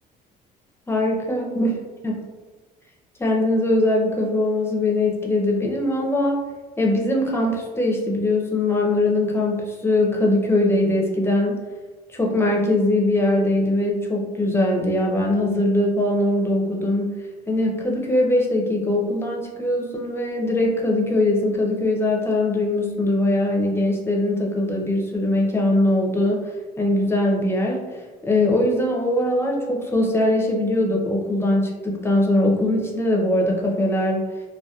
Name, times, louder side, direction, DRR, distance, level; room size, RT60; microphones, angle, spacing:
voice 1, 0.9-1.7 2.0-2.2 3.2-6.4 6.8-11.6 12.1-17.1 17.5-26.4 26.8-27.8 28.2-34.3, left 1 dB, 15° left, -1 dB, 0.5 m, -21 dB
2.7 x 2.2 x 2.2 m, 1.2 s
cardioid pair, 110°, 17 cm